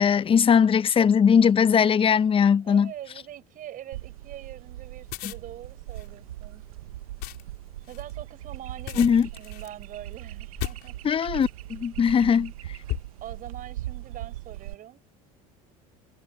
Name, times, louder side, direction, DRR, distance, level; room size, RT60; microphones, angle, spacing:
voice 1, 0.0-2.9 9.0-9.3 11.0-12.5, left 7 dB, 30° left, 1.0 m, -20 dB
voice 2, 2.6-6.6 7.9-11.0 13.2-15.0, right 12 dB, 50° right, 5.9 m, -43 dB
sound 1, 3.9-14.7, right 15 dB, 85° right, 1.4 m, -40 dB
sound 2, 5.0-11.7 12.3-12.5 12.9-13.6, left 17 dB, 60° left, 3.4 m, -38 dB
hypercardioid pair, 80°, 18 cm